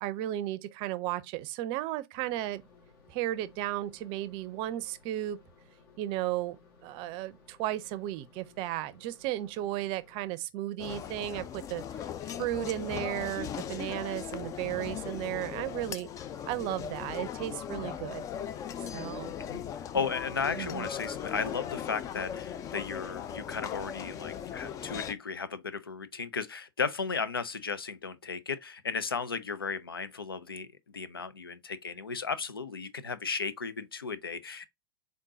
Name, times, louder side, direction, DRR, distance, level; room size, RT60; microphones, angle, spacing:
voice 1, 0.0-2.6 3.1-5.4 6.0-6.6 6.8-11.8 12.4-16.1 16.5-18.2 18.9-19.3 20.0-20.1 20.6-20.9, right 14 dB, 45° right, 0.5 m, -34 dB
sound 1, 2.1-10.4, left 4 dB, 55° left, 1.6 m, -60 dB
sound 2, 10.8-25.1, left 9 dB, 30° left, 0.4 m, -38 dB
voice 2, 19.4-34.7, left 5 dB, 90° left, 0.5 m, -35 dB
3.7 x 3.6 x 2.6 m
figure-of-eight pair, 90°, 12 cm